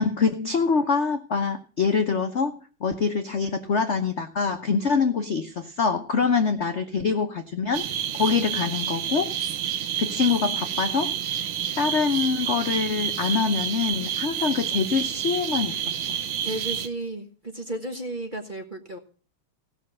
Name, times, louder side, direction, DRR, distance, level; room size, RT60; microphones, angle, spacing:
voice 1, 0.0-7.9 8.1-9.3 10.0-11.2 11.8-15.8, left 5 dB, 55° left, 6 dB, 0.8 m, -25 dB
sound 1, 7.7-16.9, right 9 dB, 70° right, 1.7 m, -29 dB
voice 2, 16.4-19.0, right 1 dB, 25° right, 4 dB, 1.2 m, -33 dB
16.5 x 6.4 x 7.6 m, 0.39 s
omnidirectional pair, 2.4 m